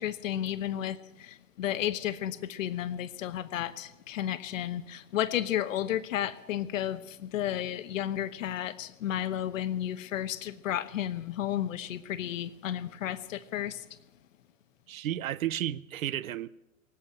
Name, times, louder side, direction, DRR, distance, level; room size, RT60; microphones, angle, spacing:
voice 1, 0.0-14.0, left 11 dB, 65° left, 1.0 m, -33 dB
voice 2, 14.9-16.5, right 12 dB, 70° right, 0.8 m, -32 dB
18.5 x 8.8 x 8.6 m
hypercardioid pair, 115°, 42 cm